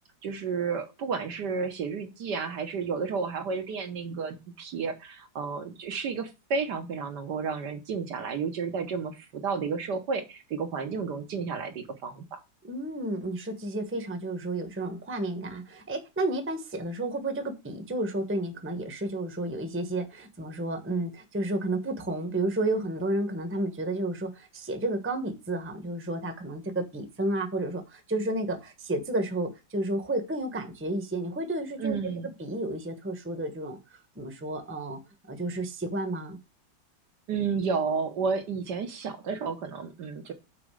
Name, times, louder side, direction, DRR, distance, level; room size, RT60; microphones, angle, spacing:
voice 1, 0.2-12.2 31.8-32.3 37.3-40.3, right 5 dB, 65° right, 1.6 m, -31 dB
voice 2, 12.6-32.1 32.4-33.8 34.1-35.0 35.3-36.4, right 2 dB, 10° right, 1.0 m, -31 dB
6.1 x 4.3 x 6.2 m
omnidirectional pair, 2.0 m